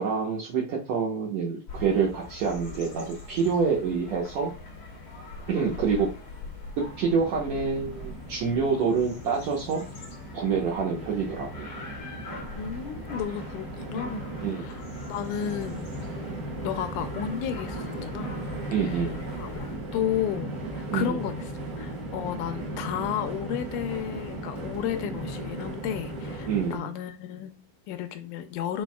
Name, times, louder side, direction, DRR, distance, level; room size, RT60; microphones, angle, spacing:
voice 1, 0.0-4.5 5.5-6.1 7.0-9.8 10.3-11.7 14.4-14.7 16.3-16.4 18.7-19.2 20.9-21.2 26.5-26.9, right 5 dB, 70° right, 2.0 m, -27 dB
sound 1, 1.7-19.8, left 3 dB, 70° left, 0.9 m, -43 dB
Train, 6.8-26.8, right 2 dB, 40° right, 1.3 m, -37 dB
voice 2, 12.6-15.9 16.6-18.4 18.8-19.1 19.4-19.7 19.9-21.5 21.8-28.8, left 10 dB, 85° left, 2.0 m, -33 dB
5.1 x 4.5 x 2.3 m
omnidirectional pair, 3.5 m